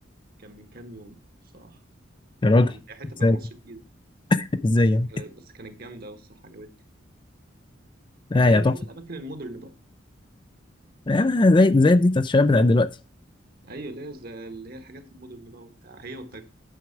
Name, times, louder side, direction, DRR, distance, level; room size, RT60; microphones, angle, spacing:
voice 1, 0.4-1.2 1.5-1.8 2.6-3.8 4.8-6.7 8.3-9.7 13.6-16.4, right 2 dB, 50° right, 1.4 m, -41 dB
voice 2, 2.4-2.7 3.2-3.4 4.3-5.1 8.3-8.7 11.1-12.9, left 2 dB, 25° left, 0.4 m, -18 dB
9.2 x 6.2 x 4.6 m
head